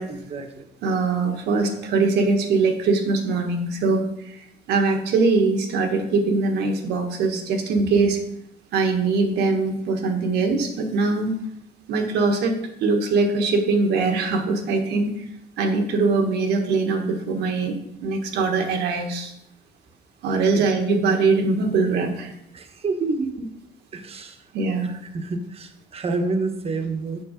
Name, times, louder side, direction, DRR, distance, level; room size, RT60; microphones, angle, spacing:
voice 1, 0.1-0.7 20.4-20.6 22.5-23.5 23.9-24.4 24.9-27.2, right 3 dB, 35° right, 7 dB, 1.1 m, -29 dB
voice 2, 0.8-8.2 8.7-11.4 11.9-15.2 15.6-17.7 18.0-19.3 20.2-22.3 24.5-24.9, right 3 dB, 80° right, 4 dB, 1.4 m, -22 dB
6.9 x 5.9 x 5.1 m, 0.81 s
cardioid pair, 110°, 17 cm